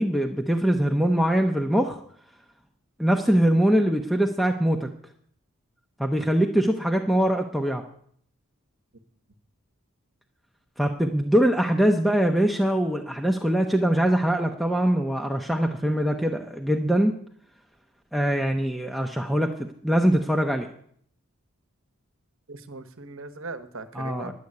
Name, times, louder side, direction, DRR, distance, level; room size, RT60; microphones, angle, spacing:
voice 1, 0.0-2.0 3.0-4.9 6.0-7.8 10.8-17.1 18.1-19.5 19.8-20.7 23.9-24.3, right 1 dB, ahead, 2 dB, 0.6 m, -22 dB
voice 2, 22.5-24.3, right 3 dB, 65° right, 10 dB, 1.1 m, -39 dB
10.5 x 7.7 x 9.6 m, 0.64 s
head